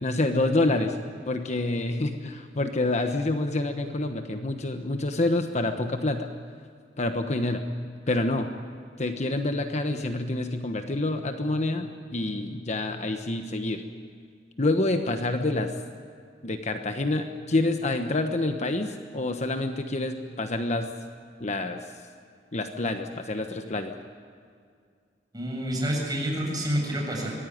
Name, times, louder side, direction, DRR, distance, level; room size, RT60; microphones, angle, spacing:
voice 1, 0.0-1.0 1.3-6.3 7.0-7.6 8.1-8.5 9.0-13.8 14.6-15.7 16.4-20.9 21.4-21.8 22.5-23.9, left 2 dB, 40° left, 6 dB, 1.2 m, -27 dB
voice 2, 25.3-27.3, equal, 20° right, -2 dB, 7.6 m, -28 dB
24.5 x 19.5 x 9.3 m, 2.1 s
head